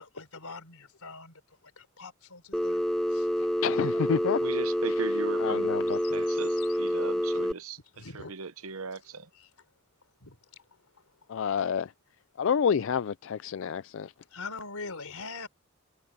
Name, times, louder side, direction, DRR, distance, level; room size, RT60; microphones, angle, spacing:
voice 1, 0.0-1.4 1.8-2.8 3.1-3.3 5.9-6.1 6.6-6.8 7.9-8.3 9.3-9.5 10.2-10.4 10.9-11.0 11.6-11.7 14.3-15.5, left 4 dB, 90° left, 4.2 m, -43 dB
Telephone, 2.5-7.5, equal, ahead, 0.5 m, -28 dB
voice 2, 3.6-4.4 4.9-6.2 11.3-11.9 12.4-14.1, left 7 dB, 60° left, 0.4 m, -29 dB
voice 3, 4.4-5.7 6.1-9.3, right 4 dB, 75° right, 0.9 m, -38 dB
head